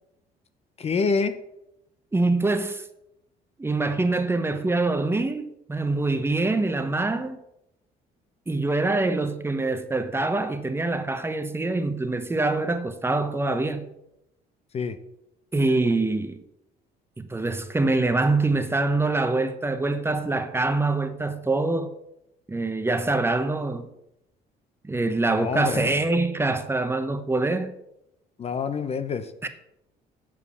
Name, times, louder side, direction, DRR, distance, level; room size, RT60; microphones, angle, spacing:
voice 1, 0.8-1.3 14.7-15.0 25.3-25.9 28.4-29.5, left 5 dB, 35° left, 0.7 m, -27 dB
voice 2, 2.1-2.8 3.6-7.4 8.5-13.9 15.5-16.4 17.2-21.9 22.5-23.9 24.8-27.7 29.4-29.5, right 2 dB, 15° right, 0.9 m, -24 dB
8.2 x 7.4 x 7.0 m
cardioid pair, 110°, 17 cm